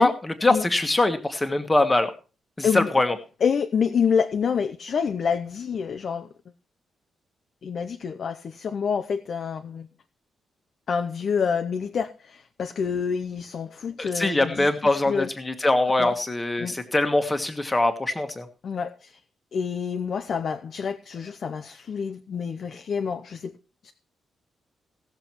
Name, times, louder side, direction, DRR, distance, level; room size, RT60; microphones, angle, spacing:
voice 1, 0.0-2.1 2.6-3.1 14.0-18.5, left 2 dB, 15° left, 1.4 m, -23 dB
voice 2, 3.4-6.3 7.6-9.9 10.9-15.3 16.0-16.1 16.6-16.8 18.6-19.2 19.5-23.5 23.8-23.9, left 6 dB, 45° left, 0.7 m, -27 dB
17.0 x 6.9 x 4.5 m
wide cardioid pair, 170°, 0 cm